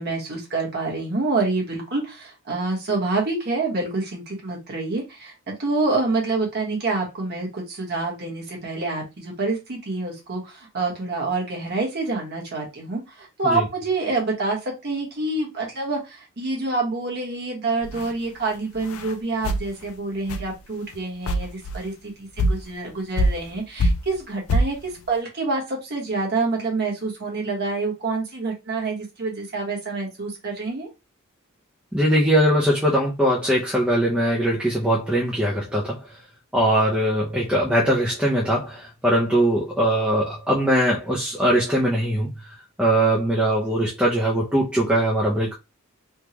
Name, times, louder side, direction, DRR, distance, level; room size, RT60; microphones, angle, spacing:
voice 1, 0.0-30.9, right 3 dB, 50° right, 1.3 m, -27 dB
sound 1, 17.8-18.1 18.8-19.1 19.4-19.7 20.3-20.5 20.9-21.0 21.3-21.8 22.4-22.6 23.2-23.5 23.8-24.2 24.5-24.7, equal, 75° left, 0.5 m, -23 dB
voice 2, 31.9-36.0 36.5-42.3 42.8-45.5, right 1 dB, 5° right, 0.6 m, -21 dB
3.5 x 2.3 x 2.9 m
head